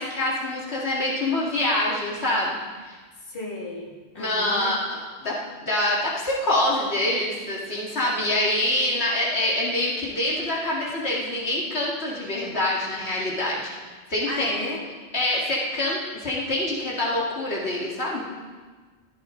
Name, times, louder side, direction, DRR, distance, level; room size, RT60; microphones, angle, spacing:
voice 1, 0.0-2.6 2.8-3.0 4.2-4.8 5.2-13.7 14.1-14.5 15.1-18.2, left 1 dB, 85° left, -5 dB, 2.5 m, -25 dB
voice 2, 3.3-4.8 14.3-14.8, left 1 dB, 60° left, -4 dB, 2.7 m, -33 dB
15.5 x 14.5 x 3.9 m, 1.4 s
omnidirectional pair, 1.1 m